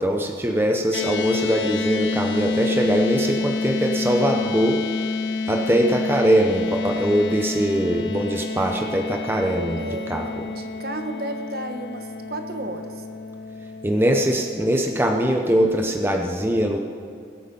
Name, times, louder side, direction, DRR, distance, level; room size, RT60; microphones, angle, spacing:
voice 1, 0.0-4.8 5.5-10.3 13.8-16.8, equal, 10° right, 3 dB, 0.7 m, -22 dB
sound 1, 0.9-15.3, left 3 dB, 80° left, 0.8 m, -29 dB
voice 2, 9.8-10.1 10.4-13.1, right 1 dB, 50° right, 6 dB, 1.2 m, -33 dB
21.0 x 8.6 x 5.4 m, 2.4 s
head